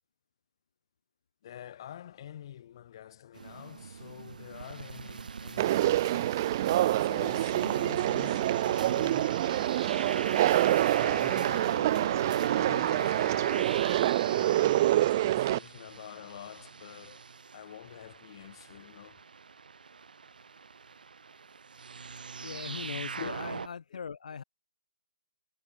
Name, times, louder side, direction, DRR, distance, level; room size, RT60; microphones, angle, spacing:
voice 1, 1.4-6.5 7.0-9.3 9.9-10.5 11.0-13.8 14.2-17.3 17.5-19.2 23.2-23.3 23.9-24.0, left 10 dB, 35° left, 1.8 m, -47 dB
sound 1, 3.3-13.9, right 6 dB, 65° right, 4.1 m, -48 dB
sound 2, 4.5-23.7, right 5 dB, 90° right, 0.9 m, -41 dB
Conversation, 5.6-15.6, right 14 dB, 25° right, 0.4 m, -26 dB
voice 2, 22.4-24.4, left 6 dB, 60° left, 1.7 m, -40 dB
hypercardioid pair, 175°, 5 cm